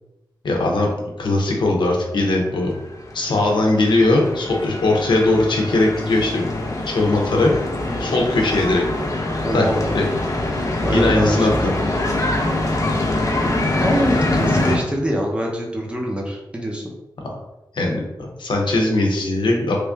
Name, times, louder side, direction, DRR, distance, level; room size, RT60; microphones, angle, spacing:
voice 1, 0.4-0.9 1.2-2.7 3.1-6.5 6.8-7.5 8.0-8.8 9.5-9.7 9.9-10.1 10.9-11.5 17.7-19.8, left 2 dB, 85° left, 0 dB, 0.7 m, -19 dB
sound 1, 2.7-14.8, left 2 dB, 45° left, 0.6 m, -24 dB
voice 2, 7.9-8.2 9.4-9.8 10.8-11.5 11.9-12.0 13.8-16.9, equal, 15° right, -2 dB, 0.8 m, -24 dB
3.2 x 2.5 x 3.4 m, 0.93 s
wide cardioid pair, 80°, 8 cm